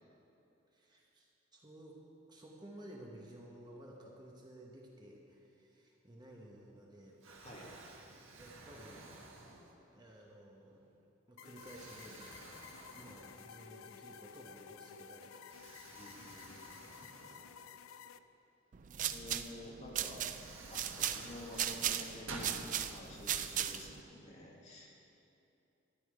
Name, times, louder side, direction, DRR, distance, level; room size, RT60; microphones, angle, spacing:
voice 1, 0.7-2.0 2.3-7.2 8.4-9.1 9.9-10.8 11.3-15.6 15.8-16.0 17.0-17.5, right 1 dB, 20° right, -2 dB, 1.1 m, -55 dB
Explosion, 6.5-6.9 7.2-10.0 10.6-10.8 11.5-13.8 14.1-14.2 15.5-18.1 19.5-19.6 20.1-22.6, right 3 dB, 80° right, 1.4 m, -53 dB
sound 1, 11.4-18.2, left 7 dB, 90° left, 0.4 m, -54 dB
voice 2, 16.0-16.7 17.0-17.3 19.1-20.2 20.7-24.9, left 1 dB, 35° left, -3 dB, 1.8 m, -50 dB
sound 2, 18.7-24.0, right 10 dB, 40° right, 0.4 m, -37 dB
13.0 x 8.6 x 5.0 m, 2.8 s
head